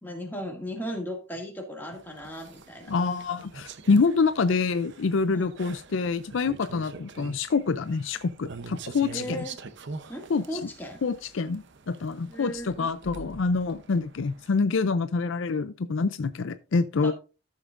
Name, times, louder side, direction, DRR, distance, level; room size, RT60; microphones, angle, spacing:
voice 1, 0.0-2.9 5.3-5.5 9.1-9.6 10.1-11.0 12.2-12.9 17.0-17.1, equal, 10° left, 2.1 m, -36 dB
sound 1, 1.9-14.5, right 4 dB, 60° right, 0.8 m, -45 dB
voice 2, 2.9-9.4 10.3-10.4 11.0-17.1, left 4 dB, 65° left, 0.5 m, -26 dB
13.5 x 7.1 x 2.5 m
head